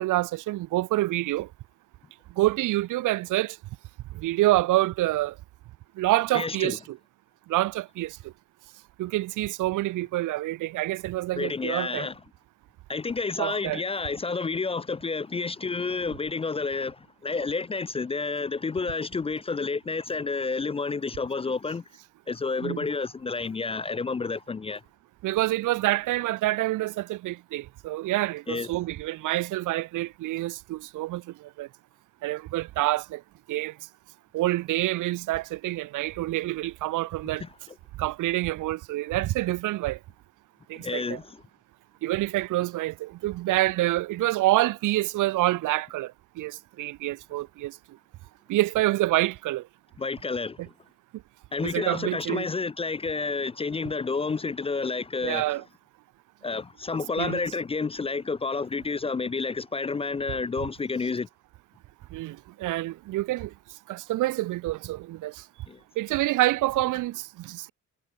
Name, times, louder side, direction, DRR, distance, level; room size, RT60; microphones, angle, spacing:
voice 1, 0.0-1.5 2.4-3.6 4.2-5.3 6.0-7.0 7.5-8.2 9.0-12.1 13.4-13.8 22.6-22.9 25.2-31.2 31.6-31.7 32.2-33.2 33.5-33.7 34.3-37.4 38.0-40.0 40.7-41.2 42.0-46.1 46.4-47.7 48.5-49.6 51.6-52.5 55.2-55.6 57.2-57.4 62.1-63.5 63.9-65.3 66.0-67.7, right 17 dB, 85° right, 1.1 m, -27 dB
voice 2, 6.3-6.8 11.3-12.2 12.9-21.8 22.3-24.8 28.5-28.7 37.4-37.5 40.7-41.4 50.0-50.6 51.5-55.5 56.4-61.3 65.7-65.8, left 4 dB, 20° left, 0.4 m, -30 dB
cardioid pair, 90°, 30 cm